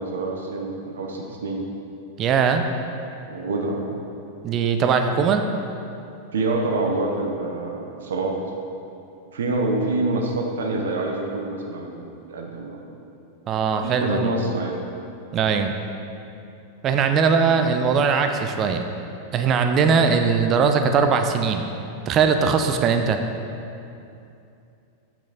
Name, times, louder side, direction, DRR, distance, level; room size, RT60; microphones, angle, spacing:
voice 1, 0.0-1.6 3.3-3.9 6.3-8.4 9.3-13.0 13.8-14.7 17.5-17.6, right 2 dB, 65° right, 1 dB, 0.8 m, -26 dB
voice 2, 2.2-2.7 4.4-5.4 13.5-14.3 15.3-15.7 16.8-18.8 19.3-21.7 22.1-23.2, right 6 dB, 30° right, 6 dB, 0.5 m, -20 dB
8.3 x 6.0 x 4.0 m, 2.7 s
figure-of-eight pair, 90°, 0 cm